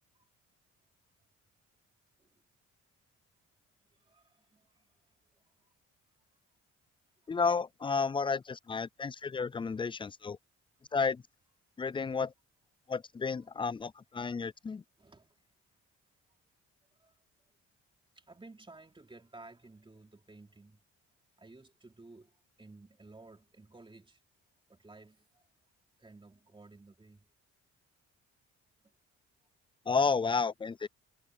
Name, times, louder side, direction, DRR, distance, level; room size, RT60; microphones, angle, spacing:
voice 1, 3.9-4.9 14.3-14.4 15.0-15.4 17.0-17.1 18.2-20.8 21.4-24.2 24.7-25.4 26.0-27.3, right 2 dB, 15° right, 3.6 m, -55 dB
voice 2, 7.3-10.4 10.9-11.2 11.8-12.3 12.9-14.8 29.9-30.9, left 5 dB, 15° left, 0.3 m, -32 dB
cardioid pair, 90°, 30 cm